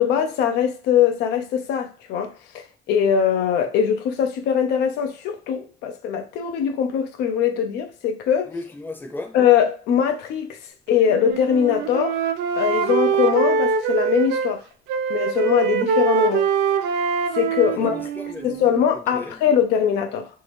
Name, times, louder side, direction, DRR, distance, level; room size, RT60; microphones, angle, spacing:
voice 1, 0.0-8.5 9.3-10.6 10.9-12.2 12.6-14.6 15.1-16.5 17.3-18.0 18.4-20.3, left 8 dB, 85° left, 0.5 m, -21 dB
voice 2, 8.4-9.4 17.7-19.4, left 2 dB, 10° left, 0.7 m, -36 dB
Wind instrument woodwind instrument, 11.0-14.6 14.9-18.9, right 6 dB, 80° right, 0.4 m, -23 dB
3.0 x 2.7 x 3.3 m
cardioid pair, 110°, 17 cm